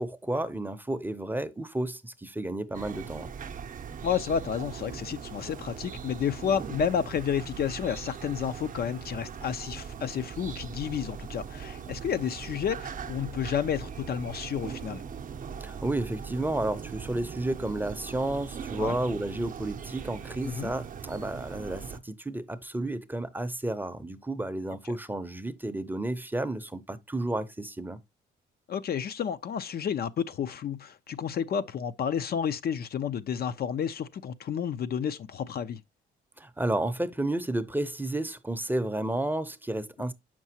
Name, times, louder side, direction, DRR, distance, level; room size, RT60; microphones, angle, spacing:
voice 1, 0.0-3.3 15.6-28.0 36.4-40.1, right 1 dB, 10° right, 0.7 m, -32 dB
sound 1, 2.7-22.0, right 7 dB, 45° right, 0.6 m, -40 dB
voice 2, 4.0-15.0 18.8-19.0 20.4-20.7 28.7-35.8, left 8 dB, 50° left, 0.5 m, -31 dB
7.2 x 6.0 x 2.8 m
cardioid pair, 90°, 20 cm